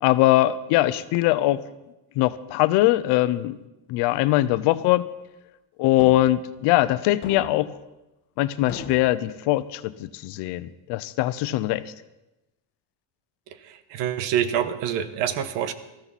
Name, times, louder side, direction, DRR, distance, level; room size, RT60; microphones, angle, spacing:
voice 1, 0.0-1.6 2.2-3.5 3.9-5.1 5.8-7.7 8.4-11.9, left 16 dB, 70° left, 14 dB, 0.8 m, -21 dB
sound 1, 6.0-6.3 7.2-7.7 8.7-9.2, left 6 dB, 25° left, 1.4 m, -38 dB
voice 2, 13.6-15.7, right 10 dB, 85° right, 12 dB, 1.2 m, -26 dB
19.5 x 14.5 x 4.2 m, 0.97 s
cardioid pair, 180°, 42 cm